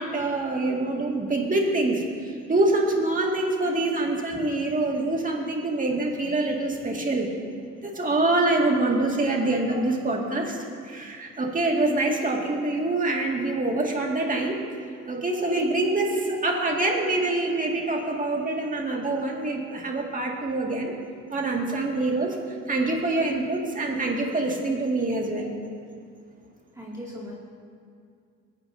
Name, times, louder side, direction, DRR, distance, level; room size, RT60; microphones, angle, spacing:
voice 1, 0.0-7.3 7.8-10.6 10.8-14.6 15.1-20.9 21.3-22.4 22.7-25.5, right 2 dB, 25° right, 0 dB, 2.1 m, -25 dB
voice 2, 26.7-27.4, equal, 10° right, -6 dB, 2.4 m, -38 dB
20.5 x 9.5 x 2.7 m, 2.3 s
cardioid pair, 90°, 30 cm